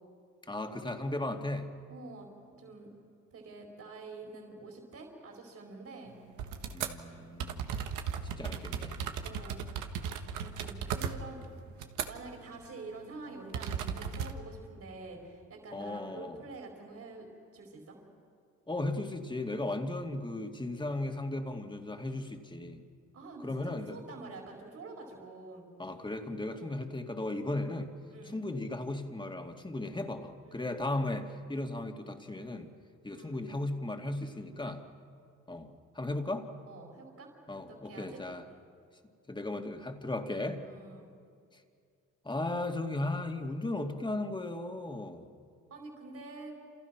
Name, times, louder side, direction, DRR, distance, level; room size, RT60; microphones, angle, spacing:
voice 1, 0.5-1.7 6.7-7.7 8.4-8.9 15.7-16.4 18.7-22.8 23.4-24.0 25.8-27.9 28.2-32.7 33.0-34.8 35.5-36.5 37.5-38.5 39.3-40.6 41.5-41.6 42.2-45.3, left 2 dB, 15° left, 4 dB, 2.4 m, -36 dB
voice 2, 1.9-2.9 3.3-6.1 9.2-9.6 10.4-11.5 12.1-17.3 17.5-18.0 23.1-25.6 26.5-26.9 28.1-28.5 30.4-31.1 33.1-33.6 36.7-38.2 38.4-38.7 40.6-41.1 45.7-46.5, right 3 dB, 60° right, 0 dB, 5.0 m, -47 dB
sound 1, 6.4-7.0 7.4-12.4 12.6-12.9 13.5-14.3, right 7 dB, 90° right, 1.6 m, -36 dB
29.5 x 28.5 x 6.0 m, 2.3 s
cardioid pair, 90°, 30 cm